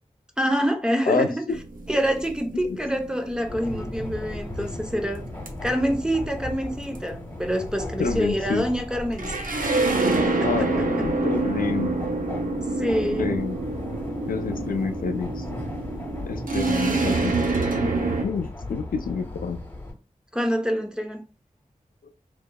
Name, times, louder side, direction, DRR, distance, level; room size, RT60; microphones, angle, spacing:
voice 1, 0.4-1.4 1.9-5.2 5.6-9.6 10.3-11.1 12.8-13.4 20.3-21.3, equal, 5° right, 0.7 m, -26 dB
voice 2, 1.1-1.6 8.0-8.7 10.4-11.9 13.2-13.6 14.3-15.4 16.3-17.3 17.8-17.9 18.2-19.6, left 5 dB, 85° left, 0.4 m, -28 dB
sound 1, 1.5-18.2, right 3 dB, 75° right, 0.7 m, -27 dB
sound 2, 3.5-19.9, left 2 dB, 15° left, 1.6 m, -36 dB
3.7 x 2.9 x 2.2 m
wide cardioid pair, 70°, 14 cm